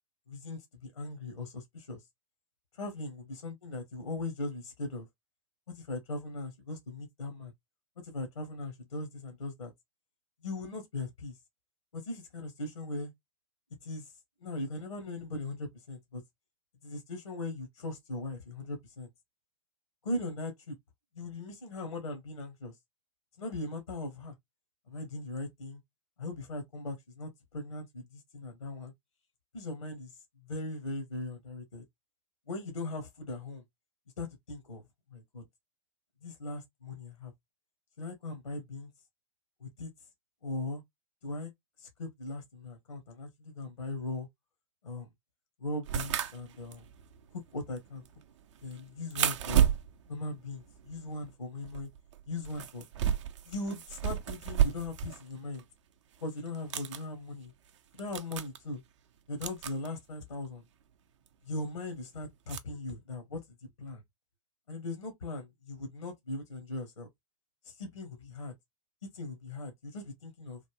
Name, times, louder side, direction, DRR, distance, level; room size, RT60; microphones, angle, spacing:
voice 1, 0.3-2.0 2.7-5.1 5.7-7.5 8.0-9.7 10.4-11.4 11.9-13.1 13.8-14.1 14.4-16.2 16.8-19.1 20.0-20.8 21.1-22.8 23.4-24.3 24.9-25.8 26.2-28.9 29.5-31.8 32.5-33.6 34.2-34.8 35.1-35.4 36.2-37.3 38.0-38.9 39.6-39.9 40.4-40.8 41.2-41.5 41.8-44.3 44.8-45.1 45.6-46.9 47.3-48.0 48.6-49.7 50.1-51.9 52.3-52.8 53.5-55.6 56.2-57.5 57.9-58.8 59.3-60.6 61.5-64.0 64.7-67.1 67.6-68.5 69.1-70.6, left 2 dB, 85° left, 0.8 m, -39 dB
sound 1, 45.8-51.3 51.6-55.2 55.5-55.6 56.5-57.0 57.7-57.8 58.0-58.6 59.4-59.9 61.3-61.4 62.5-62.6, right 9 dB, 60° right, 0.5 m, -32 dB
3.2 x 2.1 x 3.0 m
figure-of-eight pair, 100°, 17 cm